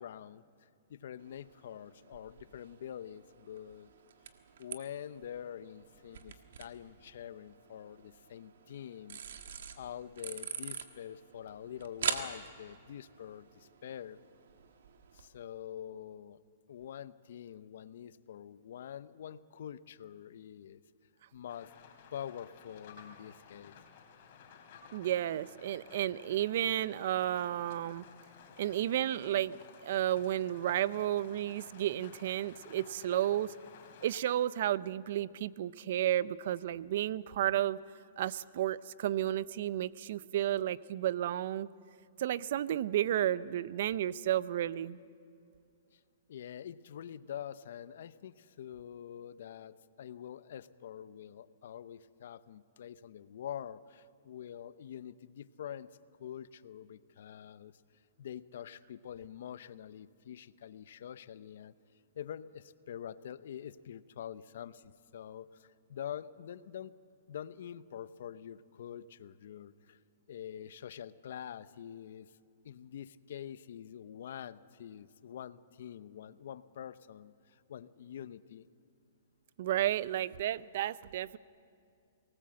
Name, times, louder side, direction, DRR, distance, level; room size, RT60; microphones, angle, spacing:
voice 1, 0.0-3.9 4.6-9.2 9.8-14.2 15.1-16.4 16.7-20.8 21.3-21.7 22.1-23.8 45.9-46.0 46.3-57.7 58.2-61.8 62.2-67.0 67.3-70.0 70.3-72.4 72.6-78.7, left 9 dB, 70° left, 16 dB, 0.7 m, -46 dB
sound 1, 1.2-15.3, right 7 dB, 75° right, 1.6 m, -45 dB
Rain, 21.5-34.2, left 6 dB, 50° left, 3.5 m, -55 dB
voice 2, 24.9-28.0 28.6-29.6 29.8-33.5 34.0-37.8 38.2-41.7 42.2-45.0 79.6-81.4, right 12 dB, 60° right, 18 dB, 0.6 m, -32 dB
22.5 x 19.0 x 7.7 m, 2.4 s
hypercardioid pair, 145°, 0 cm